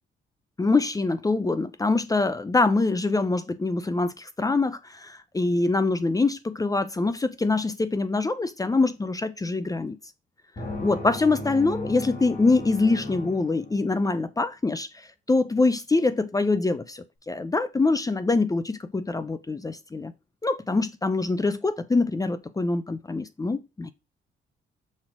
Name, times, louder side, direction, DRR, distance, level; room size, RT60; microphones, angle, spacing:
voice 1, 0.6-10.0 10.8-14.9 15.3-20.1 20.4-23.9, left 3 dB, 15° left, 0.6 m, -24 dB
sound 1, 10.6-14.1, left 2 dB, 40° left, 3.2 m, -36 dB
6.4 x 3.8 x 4.8 m
cardioid pair, 90°, 20 cm